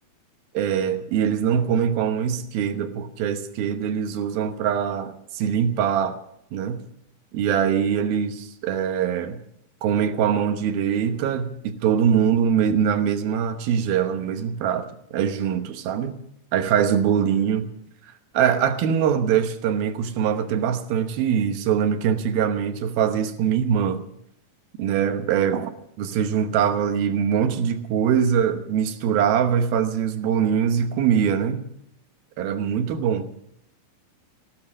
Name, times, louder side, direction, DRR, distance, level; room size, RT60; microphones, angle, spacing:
voice 1, 0.5-6.2 6.5-6.8 7.3-9.4 9.8-16.2 16.5-17.7 18.3-24.0 24.8-25.7 26.0-31.7 32.4-33.3, right 8 dB, 75° right, 2.9 m, -23 dB
16.5 x 13.0 x 6.4 m
omnidirectional pair, 4.4 m